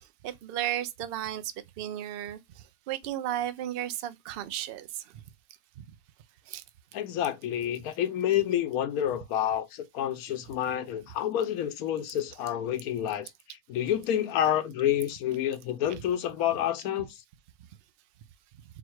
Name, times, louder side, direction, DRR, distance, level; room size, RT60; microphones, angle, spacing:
voice 1, 0.2-2.4 2.9-4.9 6.5-6.6 15.9-16.0, right 12 dB, 70° right, 0.5 m, -34 dB
voice 2, 6.9-13.3 13.7-17.2, left 10 dB, 90° left, 1.1 m, -29 dB
4.2 x 2.2 x 4.5 m
omnidirectional pair, 1.5 m